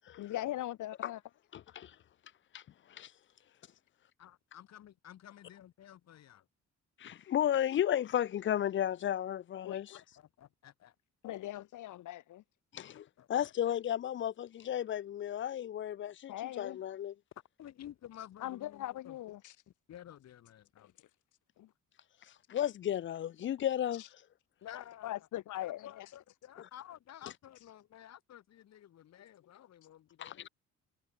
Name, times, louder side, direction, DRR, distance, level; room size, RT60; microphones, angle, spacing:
voice 1, 0.2-1.2 9.6-9.8 11.2-12.4 16.3-16.8 18.4-19.6 20.8-20.9 21.6-21.7 24.0-24.1 24.7-26.1, left 14 dB, 80° left, 2.1 m, -40 dB
voice 2, 1.5-1.9 2.5-2.6 2.9-3.1 7.0-10.0 12.7-17.1 22.5-24.0 26.6-26.7 30.2-30.5, left 10 dB, 40° left, 0.4 m, -34 dB
voice 3, 4.2-6.4 10.4-10.9 12.9-13.5 17.6-19.1 19.9-20.9 24.6-25.1 25.8-30.5, left 11 dB, 60° left, 1.1 m, -52 dB
cardioid pair, 90°, 30 cm